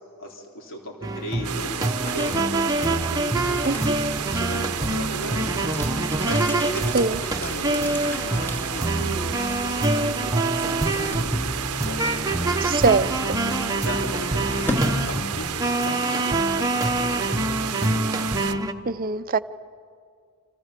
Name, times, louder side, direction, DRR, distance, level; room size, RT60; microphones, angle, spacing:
voice 1, 0.2-12.1 13.5-17.8, equal, 60° left, 1 dB, 3.5 m, -37 dB
sound 1, 1.0-18.7, right 2 dB, 15° right, 1.1 m, -26 dB
sound 2, 1.4-18.5, right 9 dB, 85° right, 0.8 m, -32 dB
sound 3, 1.8-15.7, left 1 dB, 10° left, 2.2 m, -36 dB
voice 2, 12.6-13.4 18.9-19.4, right 4 dB, 40° right, 13 dB, 0.7 m, -22 dB
29.5 x 27.0 x 6.8 m, 2.1 s
head